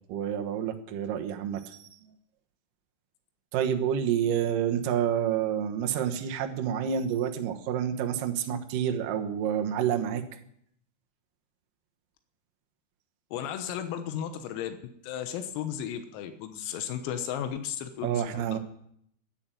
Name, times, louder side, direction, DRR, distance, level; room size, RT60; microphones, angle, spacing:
voice 1, 0.1-1.9 3.5-10.2 18.0-18.6, right 9 dB, 85° right, 4 dB, 1.9 m, -28 dB
voice 2, 13.3-14.8 15.0-18.6, left 9 dB, 90° left, 8 dB, 3.9 m, -34 dB
14.0 x 10.5 x 9.0 m, 0.71 s
omnidirectional pair, 6.0 m